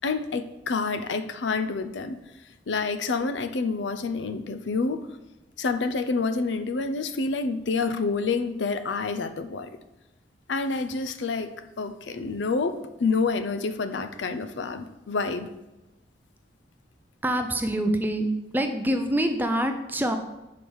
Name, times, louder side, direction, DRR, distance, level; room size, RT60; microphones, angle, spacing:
voice 1, 0.0-2.2 2.7-5.0 5.6-9.7 10.5-15.5, left 4 dB, 80° left, 10 dB, 0.5 m, -28 dB
voice 2, 17.2-18.3 18.5-20.2, right 1 dB, 10° right, 6 dB, 0.5 m, -25 dB
5.2 x 4.7 x 6.2 m, 0.99 s
head